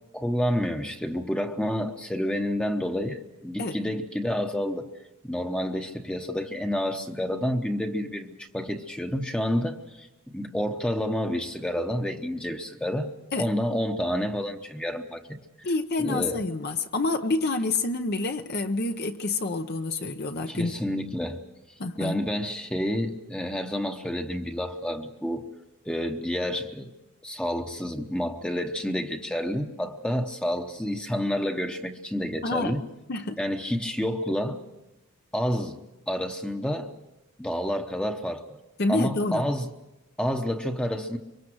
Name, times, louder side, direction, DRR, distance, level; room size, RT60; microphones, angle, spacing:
voice 1, 0.1-4.9 5.2-10.1 10.3-15.7 16.0-16.4 20.5-21.4 22.0-25.4 25.8-26.9 27.2-32.8 33.4-34.6 35.3-35.8 36.1-36.9 37.4-38.6 38.9-39.7 40.2-41.2, equal, 5° left, 0.9 m, -29 dB
voice 2, 15.6-20.7 21.8-22.2 32.4-32.8 33.1-33.4 38.8-39.4, left 2 dB, 50° left, 0.8 m, -28 dB
24.5 x 24.0 x 6.3 m
head